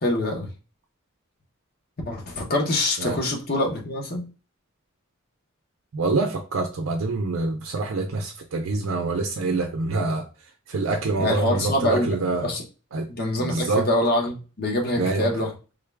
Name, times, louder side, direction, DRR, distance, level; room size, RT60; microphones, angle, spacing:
voice 1, 0.0-0.5 2.1-4.2 11.2-12.6 13.1-15.5, left 1 dB, 45° left, 1 dB, 1.0 m, -25 dB
voice 2, 5.9-10.2 10.7-12.5 12.9-13.1 13.4-13.9 15.0-15.3, right 3 dB, 75° right, 3 dB, 0.5 m, -26 dB
3.7 x 2.3 x 3.3 m, 0.33 s
head